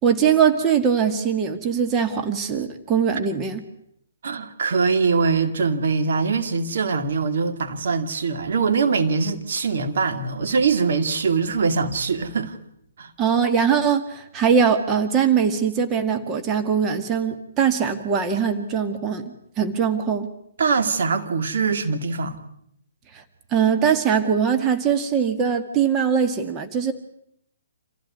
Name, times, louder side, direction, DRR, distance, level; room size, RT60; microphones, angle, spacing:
voice 1, 0.0-3.6 13.2-19.2 19.6-20.3 23.1-23.2 23.5-26.9, right 7 dB, 25° right, 2.0 m, -21 dB
voice 2, 4.2-12.6 13.0-13.1 20.6-22.4, right 5 dB, 60° right, 2.3 m, -22 dB
27.0 x 15.5 x 9.6 m
figure-of-eight pair, 130°, 0 cm